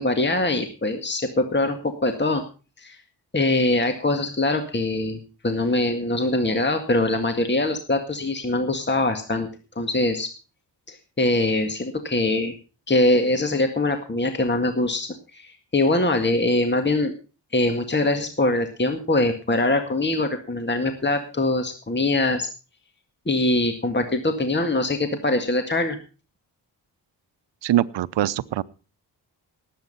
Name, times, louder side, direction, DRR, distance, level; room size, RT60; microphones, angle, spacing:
voice 1, 0.0-2.4 2.8-3.0 3.3-5.2 5.4-9.5 9.8-10.3 10.9-12.6 12.9-17.1 17.5-22.5 23.3-26.0, left 2 dB, 25° left, 6 dB, 2.0 m, -23 dB
voice 2, 27.6-28.6, right 13 dB, 80° right, 17 dB, 0.8 m, -23 dB
18.5 x 8.6 x 5.5 m, 0.36 s
cardioid pair, 65°, 43 cm